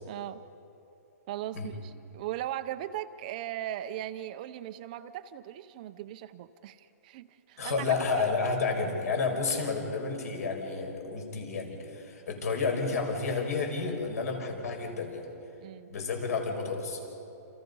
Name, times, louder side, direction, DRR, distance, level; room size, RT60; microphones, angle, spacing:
voice 1, 0.0-0.4 1.3-8.3 15.6-15.9, right 12 dB, 25° right, 10 dB, 0.6 m, -38 dB
voice 2, 7.6-15.2 15.9-17.0, left 4 dB, 65° left, 3 dB, 5.7 m, -31 dB
29.0 x 28.0 x 5.5 m, 2.9 s
hypercardioid pair, 170°, 9 cm